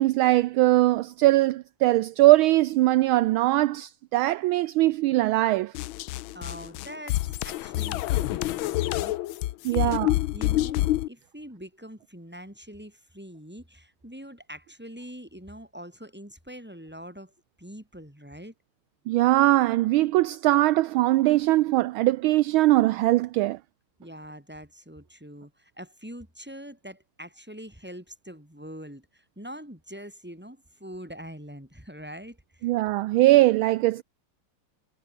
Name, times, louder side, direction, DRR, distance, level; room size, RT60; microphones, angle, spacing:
voice 1, 0.0-5.7 9.6-10.1 19.1-23.6 32.6-34.0, right 17 dB, 75° right, 1.4 m, -21 dB
sound 1, 5.7-11.1, left 16 dB, 75° left, 1.4 m, -27 dB
voice 2, 6.3-9.2 9.6-10.0 10.3-17.3 17.6-18.5 24.0-32.7, equal, 5° right, 6.5 m, -43 dB
omnidirectional pair, 2.4 m